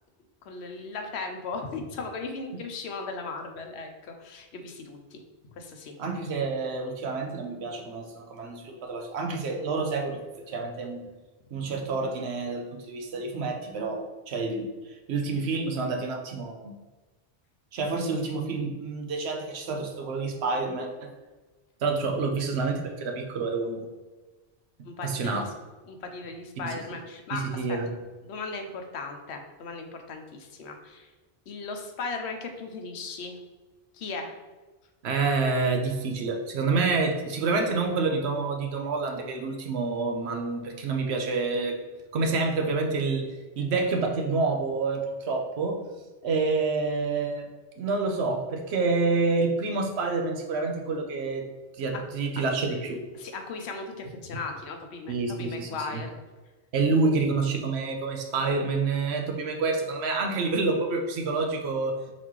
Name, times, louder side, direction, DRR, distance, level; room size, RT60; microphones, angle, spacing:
voice 1, 0.5-5.2 5.6-5.9 24.8-25.4 25.9-27.8 28.2-31.1 31.5-33.3 33.9-34.3 51.9-52.0 53.1-56.1, left 4 dB, 85° left, 4 dB, 1.0 m, -37 dB
voice 2, 6.0-10.2 10.5-11.0 11.5-14.7 15.1-16.7 17.7-21.1 21.8-23.9 25.0-25.4 26.6-26.7 27.3-27.9 35.0-41.8 42.1-43.3 43.6-45.8 46.2-47.4 47.8-51.5 51.8-53.0 55.1-56.0 56.7-62.0, right 3 dB, 80° right, 3 dB, 1.0 m, -28 dB
4.2 x 4.2 x 3.1 m, 1.2 s
omnidirectional pair, 1.1 m